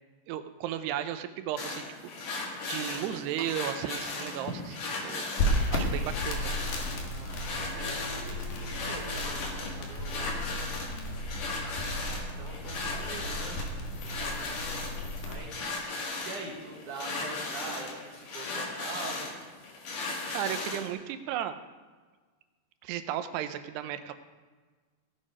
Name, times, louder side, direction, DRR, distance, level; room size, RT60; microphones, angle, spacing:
voice 1, 0.3-2.1 2.7-5.3 5.7-6.5 20.3-21.6 22.8-24.1, right 10 dB, 85° right, 10 dB, 2.8 m, -35 dB
sound 1, 1.6-20.9, left 3 dB, 55° left, 3.2 m, -37 dB
Wind instrument woodwind instrument, 4.1-12.5, left 2 dB, 35° left, 1.9 m, -51 dB
sound 2, 5.4-15.4, left 1 dB, 75° left, 3.8 m, -34 dB
voice 2, 7.0-10.8 12.4-14.6 15.2-19.2, right 3 dB, 60° right, 0 dB, 2.5 m, -44 dB
17.5 x 7.6 x 5.0 m, 1.4 s
omnidirectional pair, 4.8 m